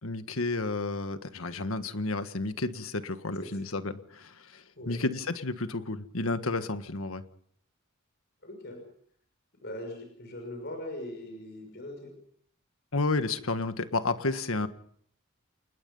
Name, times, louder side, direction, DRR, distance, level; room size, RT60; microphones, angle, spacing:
voice 1, 0.0-7.2 12.9-14.7, left 3 dB, 80° left, 10 dB, 1.6 m, -31 dB
voice 2, 8.4-8.8 9.6-12.1, left 1 dB, 55° left, 4 dB, 6.2 m, -40 dB
28.5 x 20.0 x 5.5 m, 0.64 s
head